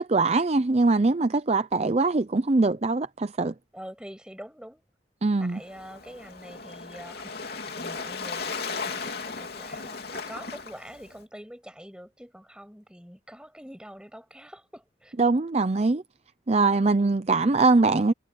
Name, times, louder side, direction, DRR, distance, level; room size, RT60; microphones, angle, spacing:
voice 1, 0.0-3.5 5.2-5.6 15.2-16.0 16.5-18.1, right 3 dB, 35° right, 0.6 m, -22 dB
voice 2, 3.7-4.8 5.4-15.1, equal, 5° right, 7.3 m, -45 dB
Waves surf, 5.5-11.2, left 4 dB, 55° left, 3.1 m, -36 dB
head